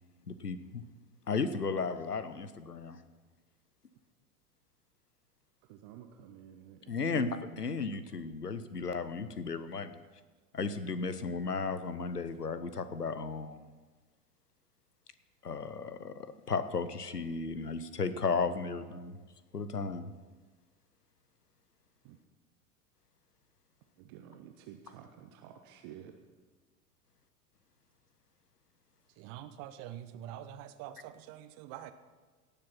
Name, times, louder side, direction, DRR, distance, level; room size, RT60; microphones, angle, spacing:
voice 1, 0.3-0.8 1.3-3.0 6.9-7.3 7.6-9.9 10.5-13.7 15.4-19.2 19.5-20.1, left 4 dB, 85° left, 13 dB, 0.8 m, -34 dB
voice 2, 5.6-7.3 22.0-22.2 24.0-26.1, right 11 dB, 20° right, 5 dB, 0.3 m, -49 dB
voice 3, 29.2-31.9, right 11 dB, 35° right, 11 dB, 0.8 m, -45 dB
17.5 x 7.0 x 5.7 m, 1.3 s
figure-of-eight pair, 90°, 46 cm